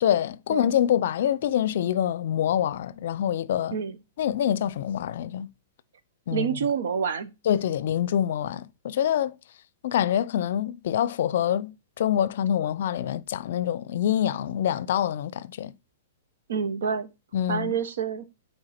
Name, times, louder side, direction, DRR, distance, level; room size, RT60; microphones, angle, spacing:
voice 1, 0.0-3.8 4.2-5.5 6.3-6.5 7.5-9.3 9.8-15.7 17.3-17.7, left 10 dB, 60° left, 0.5 m, -25 dB
voice 2, 6.3-7.3 16.5-17.1 17.5-18.2, right 7 dB, 75° right, 1.1 m, -27 dB
7.9 x 4.5 x 4.3 m
hypercardioid pair, 150°, 0 cm